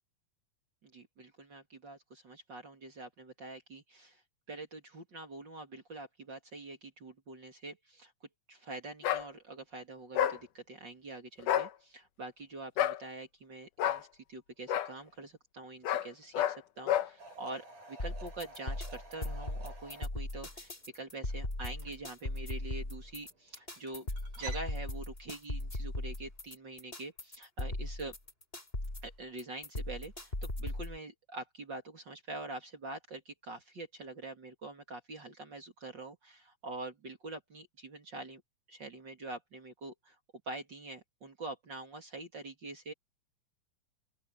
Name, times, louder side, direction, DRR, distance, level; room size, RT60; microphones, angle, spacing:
voice 1, 0.8-4.2 4.5-8.1 8.5-24.1 24.4-28.1 29.0-38.4 38.7-40.1 40.5-42.9, right 2 dB, 35° right, 3.0 m, -45 dB
sound 1, 9.0-9.3 10.2-10.4 11.4-11.7 12.8-13.0 13.8-14.0 14.7-14.9 15.8-16.1 16.3-16.6 16.9-17.1, left 11 dB, 85° left, 2.7 m, -29 dB
sound 2, 17.2-24.7, right 4 dB, 90° right, 9.0 m, -52 dB
sound 3, 18.0-31.0, left 1 dB, 15° left, 5.0 m, -38 dB
open air
omnidirectional pair, 3.5 m